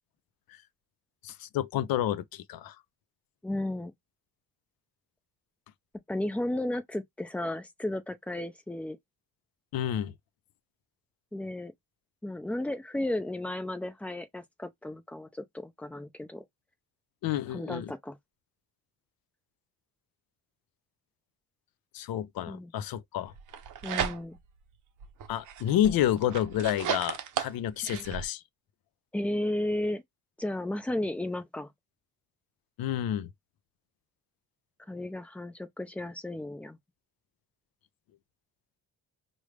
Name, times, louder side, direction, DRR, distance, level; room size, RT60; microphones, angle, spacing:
voice 1, 1.2-2.8 9.7-10.1 17.2-17.9 21.9-23.3 25.3-28.4 32.8-33.3, left 11 dB, 70° left, 0.5 m, -29 dB
voice 2, 3.4-3.9 6.1-9.0 11.3-11.7 12.2-16.4 17.5-18.2 22.5-22.7 23.8-24.4 27.9-28.0 29.1-30.0 30.4-31.7 34.9-36.8, left 1 dB, 5° left, 0.3 m, -34 dB
sound 1, 23.4-24.6 25.0-28.2, right 9 dB, 55° right, 0.6 m, -35 dB
4.9 x 2.1 x 3.2 m
cardioid pair, 170°, 37 cm